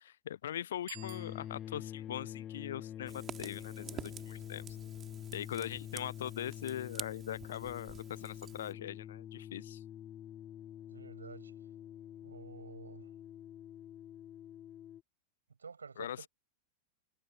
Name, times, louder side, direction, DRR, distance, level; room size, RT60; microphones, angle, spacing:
voice 1, 0.0-4.6 5.3-9.8 16.0-16.3, left 11 dB, 60° left, 0.9 m, -41 dB
Bicycle bell, 0.8-2.0, right 27 dB, 40° right, 1.4 m, -54 dB
sound 1, 0.9-15.0, left 10 dB, 30° left, 1.5 m, -46 dB
Fire, 3.1-8.7, right 9 dB, 25° right, 4.2 m, -49 dB
voice 2, 10.9-11.5 12.2-13.1 15.6-16.3, right 5 dB, 75° right, 6.1 m, -50 dB
figure-of-eight pair, 90°, 0 cm